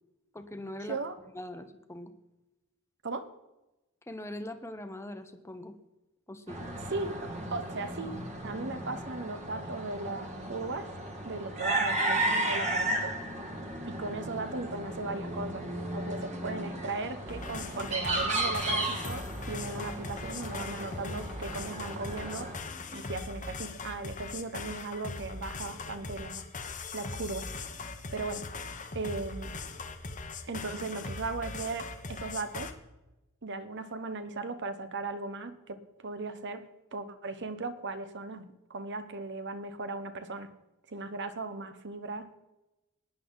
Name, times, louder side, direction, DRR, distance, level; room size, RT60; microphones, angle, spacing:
voice 1, 0.3-1.0 1.3-2.1 4.1-5.7 6.3-6.6, left 1 dB, 10° left, 8 dB, 1.0 m, -41 dB
sound 1, 6.5-22.6, right 1 dB, 30° right, 1.8 m, -34 dB
voice 2, 6.9-8.2 8.4-10.9 11.2-13.2 13.9-15.7 15.9-22.5 22.9-26.4 26.9-27.5 28.1-28.4 28.9-29.5 30.5-32.7 33.4-40.5 40.9-42.3, right 3 dB, 55° right, 10 dB, 1.2 m, -37 dB
sound 2, 17.3-32.7, left 3 dB, 35° left, 1.1 m, -40 dB
18.0 x 10.5 x 4.1 m, 0.99 s
head